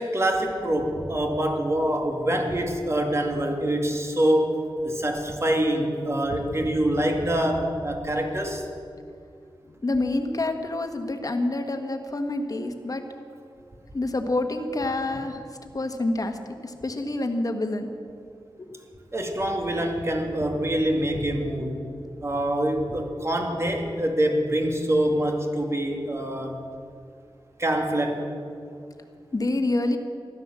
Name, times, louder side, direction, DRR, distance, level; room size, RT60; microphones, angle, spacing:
voice 1, 0.0-8.7 19.1-21.9 22.2-26.7 27.6-28.3, right 1 dB, 30° right, 3 dB, 2.2 m, -25 dB
voice 2, 9.8-13.0 13.9-15.4 15.7-16.4 16.6-17.9 18.7-18.8 29.3-30.0, left 2 dB, 45° left, 6 dB, 1.5 m, -27 dB
15.0 x 12.0 x 7.5 m, 2.4 s
wide cardioid pair, 90°, 9 cm